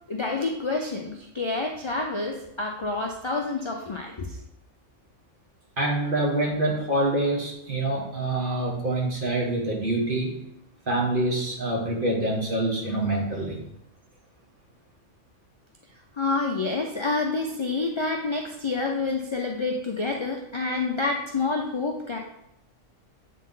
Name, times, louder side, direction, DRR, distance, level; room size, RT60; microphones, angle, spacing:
voice 1, 0.1-4.4 16.1-22.2, left 3 dB, 45° left, 1 dB, 0.3 m, -28 dB
voice 2, 5.8-10.3 10.9-13.6, right 1 dB, 45° right, -2 dB, 1.6 m, -26 dB
7.5 x 3.7 x 3.8 m, 0.80 s
omnidirectional pair, 1.3 m